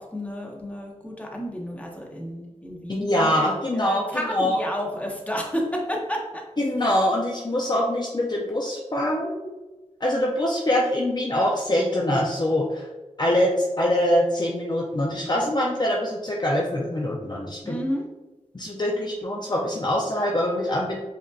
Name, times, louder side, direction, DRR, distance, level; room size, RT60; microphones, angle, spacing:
voice 1, 0.0-3.5 3.7-6.4 17.6-18.0, equal, 10° left, -1 dB, 1.0 m, -31 dB
voice 2, 2.9-4.6 6.6-9.5 10.0-12.9 13.2-17.8 18.5-21.0, left 1 dB, 35° left, -2 dB, 0.5 m, -24 dB
5.0 x 2.7 x 2.4 m, 1.2 s
wide cardioid pair, 50°, 13 cm